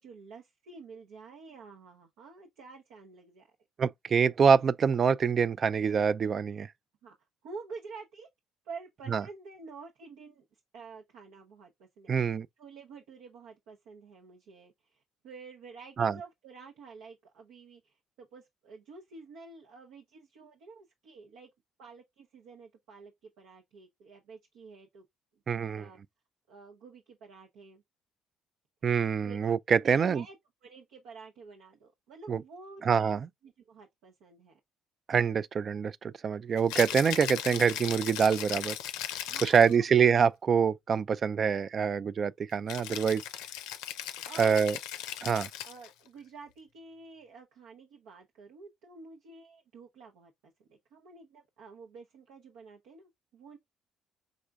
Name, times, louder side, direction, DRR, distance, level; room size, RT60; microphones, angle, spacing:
voice 1, 0.0-3.5 7.0-7.1 7.4-8.3 8.6-21.5 21.8-25.1 25.7-26.0 26.5-27.8 29.2-29.4 29.8-30.4 30.6-34.6 39.2-39.9 42.8-43.1 44.2-44.8 45.7-53.6, right 4 dB, 80° right, 0.8 m, -49 dB
voice 2, 3.8-6.7 9.1-9.2 12.1-12.5 16.0-16.1 25.5-25.9 28.8-30.2 32.3-32.4 32.8-33.3 35.1-38.8 39.4-43.2 44.4-44.8 45.2-45.5, right 6 dB, 50° right, 0.3 m, -25 dB
Rattle (instrument), 36.6-39.8 42.7-45.9, left 11 dB, 80° left, 0.5 m, -37 dB
5.0 x 3.3 x 2.3 m
hypercardioid pair, 60°, 0 cm